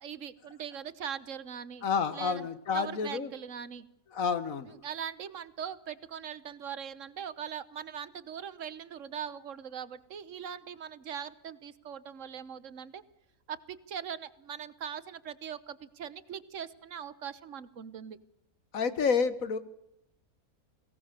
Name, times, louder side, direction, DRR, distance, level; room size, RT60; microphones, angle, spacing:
voice 1, 0.0-2.5 2.7-3.9 4.7-13.0 13.5-18.2, right 8 dB, 60° right, 16 dB, 1.3 m, -41 dB
voice 2, 1.8-3.3 4.1-4.7 18.7-19.6, left 5 dB, 65° left, 13 dB, 1.6 m, -29 dB
22.0 x 17.5 x 6.7 m, 0.82 s
omnidirectional pair, 1.6 m